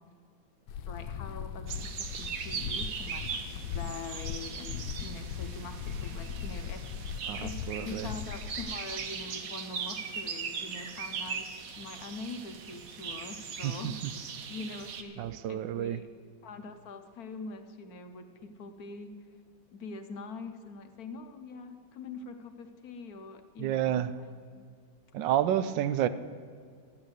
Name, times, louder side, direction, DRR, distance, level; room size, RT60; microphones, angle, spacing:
sound 1, 0.7-8.8, left 8 dB, 85° left, 1.4 m, -39 dB
voice 1, 0.9-6.9 7.4-14.0 14.5-16.0 16.4-19.1 19.7-24.6, left 3 dB, 60° left, 7 dB, 1.1 m, -44 dB
sound 2, 1.7-15.0, right 6 dB, 55° right, 1.1 m, -39 dB
voice 2, 7.3-8.1 13.6-13.9 15.2-16.0 23.6-24.1 25.1-26.1, right 11 dB, 75° right, 14 dB, 1.2 m, -30 dB
12.0 x 8.8 x 7.9 m, 2.1 s
omnidirectional pair, 2.1 m